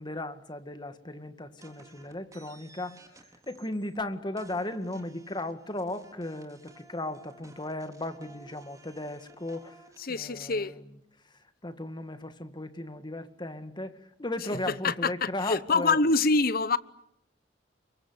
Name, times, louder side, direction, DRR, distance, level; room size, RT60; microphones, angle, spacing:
voice 1, 0.0-3.0 3.5-9.8 10.1-10.8 11.6-15.9, left 1 dB, 25° left, 2.0 m, -36 dB
sound 1, 1.6-4.0 4.4-10.1, right 2 dB, 20° right, 3.8 m, -55 dB
voice 2, 10.0-10.8 14.8-16.8, left 3 dB, 55° left, 1.1 m, -25 dB
29.5 x 23.5 x 8.1 m
head